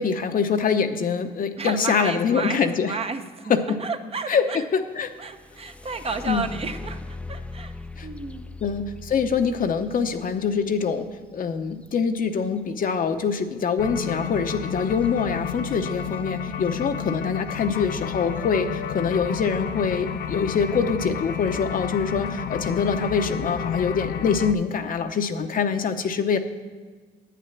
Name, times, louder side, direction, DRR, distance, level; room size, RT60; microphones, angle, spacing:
voice 1, 0.0-2.9 3.5-3.8 4.3-4.4 4.7-5.1 6.3-6.5 8.0-8.1 8.6-11.1 11.3-26.4, left 6 dB, 50° left, 7 dB, 0.8 m, -24 dB
voice 2, 1.6-3.5 3.8-4.6 5.2-7.7 8.0-8.5 18.5-18.8 25.4-25.6, right 4 dB, 35° right, 8 dB, 0.8 m, -32 dB
sound 1, 5.0-12.8 14.9-15.1 15.5-16.1 16.7-16.8 17.3-17.6, left 3 dB, 5° left, 0.3 m, -41 dB
sound 2, 13.8-24.5, left 7 dB, 80° left, 0.6 m, -31 dB
9.3 x 8.6 x 5.9 m, 1.5 s
cardioid pair, 95°, 18 cm